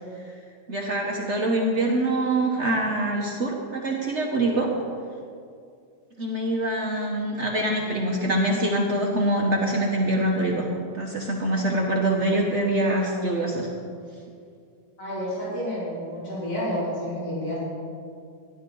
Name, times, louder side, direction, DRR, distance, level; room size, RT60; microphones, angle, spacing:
voice 1, 0.7-4.7 6.2-10.7 10.9-13.7, right 1 dB, 45° right, -1 dB, 1.2 m, -24 dB
voice 2, 15.0-17.6, equal, 55° left, -9 dB, 4.0 m, -30 dB
13.5 x 11.0 x 3.8 m, 2.3 s
omnidirectional pair, 1.9 m